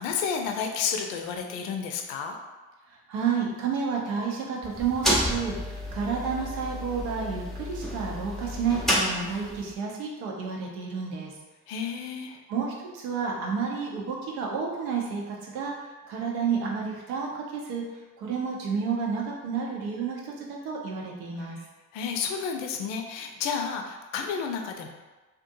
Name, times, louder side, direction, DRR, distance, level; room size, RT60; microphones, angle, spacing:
voice 1, 0.0-2.4 11.7-12.4 21.4-21.6 21.9-24.9, left 6 dB, 65° left, 3 dB, 0.5 m, -31 dB
voice 2, 2.9-11.3 12.5-17.8 18.2-21.6, right 6 dB, 75° right, -1 dB, 0.7 m, -30 dB
sound 1, 4.6-9.7, equal, ahead, 0.6 m, -30 dB
2.5 x 2.4 x 2.6 m, 1.2 s
figure-of-eight pair, 50°, 44 cm